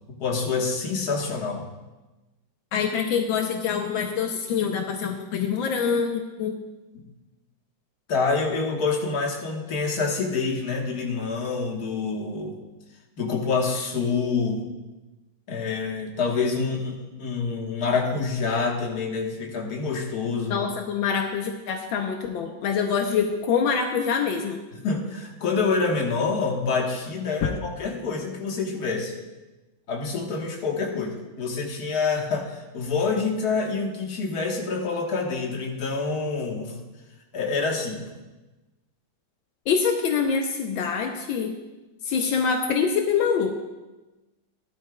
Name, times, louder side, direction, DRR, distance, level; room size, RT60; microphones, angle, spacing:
voice 1, 0.1-1.7 7.0-7.1 8.1-12.6 13.2-14.7 15.5-20.7 24.7-29.1 29.9-36.7 37.3-38.0, left 4 dB, 55° left, 1 dB, 1.8 m, -27 dB
voice 2, 2.7-6.6 20.5-24.6 39.7-41.5 42.0-43.5, left 6 dB, 80° left, 3 dB, 1.6 m, -25 dB
17.5 x 12.0 x 2.3 m, 1.1 s
omnidirectional pair, 2.1 m